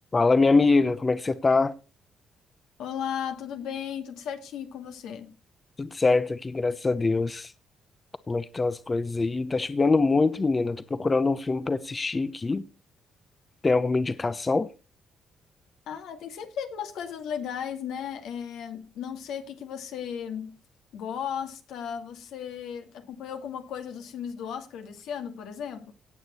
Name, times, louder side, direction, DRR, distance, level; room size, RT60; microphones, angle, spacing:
voice 1, 0.1-1.7 5.8-7.5 8.3-12.6 13.6-14.7, left 3 dB, 25° left, 0.8 m, -24 dB
voice 2, 2.8-5.4 15.9-20.6 20.9-25.9, left 8 dB, 85° left, 1.8 m, -35 dB
17.5 x 6.7 x 4.3 m
cardioid pair, 90°, 0 cm